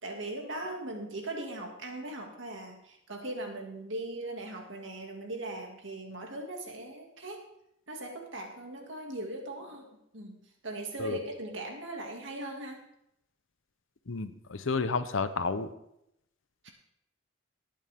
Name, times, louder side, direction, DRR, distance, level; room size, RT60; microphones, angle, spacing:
voice 1, 0.0-7.4 7.9-9.9 10.1-12.8 16.6-16.7, right 1 dB, 60° right, 2 dB, 2.2 m, -39 dB
voice 2, 14.1-15.7, left 4 dB, 70° left, 12 dB, 0.7 m, -31 dB
18.5 x 9.0 x 3.6 m, 0.80 s
head